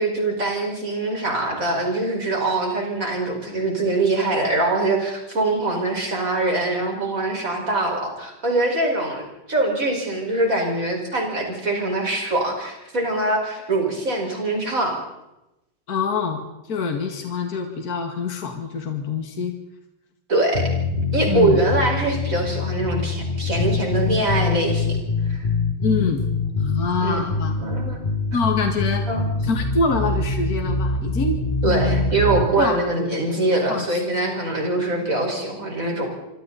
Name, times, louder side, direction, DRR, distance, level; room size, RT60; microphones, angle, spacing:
voice 1, 0.0-15.0 20.3-20.6 21.1-25.0 25.3-25.5 27.0-28.0 29.0-29.3 31.6-36.1, right 2 dB, 50° right, 1 dB, 5.9 m, -23 dB
voice 2, 15.9-19.5 21.3-21.6 25.8-26.3 26.6-27.5 28.3-29.0 29.4-31.4 31.7-32.1 32.6-33.3 33.7-33.9, left 4 dB, 60° left, 4 dB, 2.6 m, -25 dB
sound 1, 20.5-32.5, left 3 dB, 30° left, 2.9 m, -24 dB
26.5 x 25.0 x 4.2 m, 0.93 s
omnidirectional pair, 1.9 m